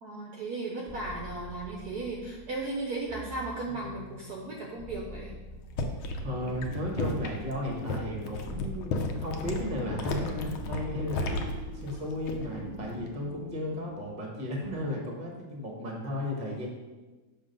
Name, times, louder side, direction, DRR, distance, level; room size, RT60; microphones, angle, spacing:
voice 1, 0.0-5.3, right 2 dB, 65° right, -1 dB, 1.0 m, -36 dB
sound 1, 0.9-14.2, left 1 dB, 15° left, 1.2 m, -44 dB
sound 2, 5.5-12.6 12.9-13.3, left 2 dB, 80° left, 1.5 m, -34 dB
voice 2, 6.2-16.7, equal, 30° right, -1 dB, 1.0 m, -35 dB
6.4 x 3.7 x 5.2 m, 1.2 s
omnidirectional pair, 2.3 m